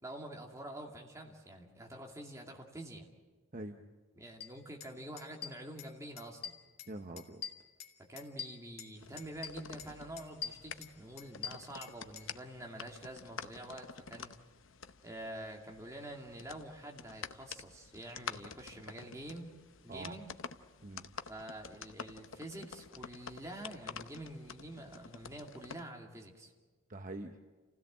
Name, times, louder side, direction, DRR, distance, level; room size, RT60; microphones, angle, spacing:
voice 1, 0.0-3.1 4.2-6.6 8.1-14.3 15.0-19.5 19.8-20.3 21.3-26.5, right 1 dB, 15° right, 1 dB, 2.5 m, -47 dB
voice 2, 3.5-3.9 6.9-7.4 19.9-20.2 20.8-21.1 26.9-27.4, right 2 dB, 40° right, 6 dB, 0.9 m, -44 dB
sound 1, 4.4-4.5 4.8-4.9 5.2-5.9 6.2-6.9 7.2-8.9 9.2-9.9 10.2-12.3, left 7 dB, 50° left, 2.1 m, -44 dB
sound 2, 9.0-25.8, left 6 dB, 70° left, 0.8 m, -49 dB
28.5 x 16.5 x 7.6 m, 1.4 s
head